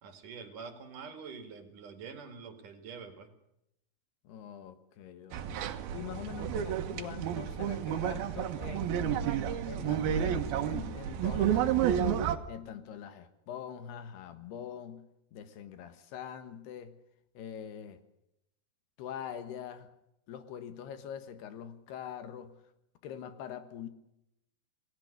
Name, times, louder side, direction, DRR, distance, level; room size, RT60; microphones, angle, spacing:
voice 1, 0.0-3.3, right 5 dB, 55° right, 8 dB, 3.5 m, -46 dB
voice 2, 4.3-5.7 5.9-9.3 9.6-12.1 12.5-17.0 17.4-18.0 19.0-19.9 20.3-22.6 23.0-23.9, left 9 dB, 80° left, 11 dB, 3.6 m, -44 dB
sound 1, 5.3-12.4, right 9 dB, 70° right, 3.1 m, -31 dB
28.0 x 19.0 x 6.8 m, 0.82 s
omnidirectional pair, 4.7 m